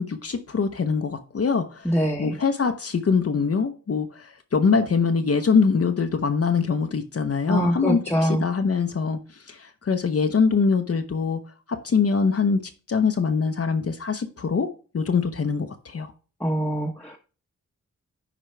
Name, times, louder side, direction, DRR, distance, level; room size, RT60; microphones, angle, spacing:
voice 1, 0.0-11.4 11.7-12.6 12.9-16.1, left 5 dB, 50° left, 7 dB, 0.8 m, -23 dB
voice 2, 1.8-2.4 7.5-8.4 16.4-17.2, equal, 5° left, 1 dB, 1.0 m, -23 dB
10.0 x 4.5 x 3.3 m, 0.36 s
cardioid pair, 65°, 31 cm